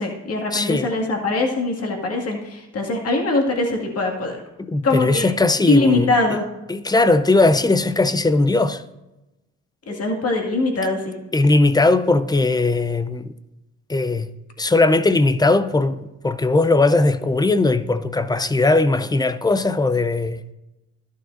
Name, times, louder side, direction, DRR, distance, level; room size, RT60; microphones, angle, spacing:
voice 1, 0.0-4.4 4.8-5.3 5.7-6.4 9.9-11.1, left 2 dB, 55° left, 2.0 m, -22 dB
voice 2, 0.5-0.9 4.6-6.1 6.7-8.8 11.3-13.3 13.9-14.3 14.6-20.4, left 2 dB, 15° left, 0.4 m, -19 dB
12.5 x 11.0 x 2.6 m
cardioid pair, 90°, 30 cm